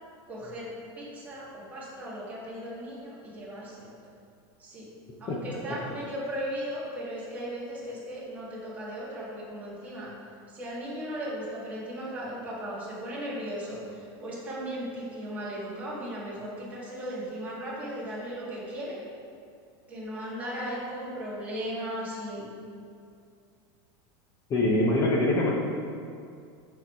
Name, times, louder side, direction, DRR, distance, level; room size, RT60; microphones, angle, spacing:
voice 1, 0.3-3.9 4.6-4.9 5.2-10.1 10.5-19.0 19.9-22.5, equal, 10° right, -7 dB, 1.6 m, -37 dB
voice 2, 24.5-25.5, left 1 dB, 20° left, -1 dB, 0.6 m, -23 dB
6.5 x 4.5 x 5.4 m, 2.4 s
supercardioid pair, 170°, 13 cm